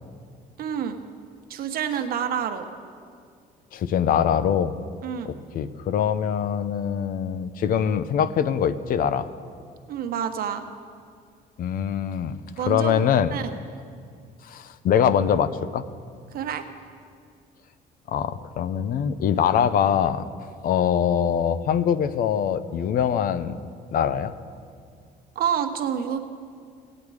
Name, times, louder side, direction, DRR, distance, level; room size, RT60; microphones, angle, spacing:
voice 1, 0.6-1.0 1.5-2.7 5.0-5.3 9.9-10.6 12.6-13.0 13.3-13.5 16.3-16.6 25.3-26.2, right 8 dB, 60° right, 7 dB, 1.0 m, -28 dB
voice 2, 3.7-4.7 5.2-9.3 11.6-13.3 14.4-15.8 18.1-20.2 20.6-23.6 23.9-24.3, left 8 dB, 60° left, 14 dB, 0.6 m, -23 dB
18.0 x 8.8 x 4.8 m, 2.2 s
cardioid pair, 110°, 17 cm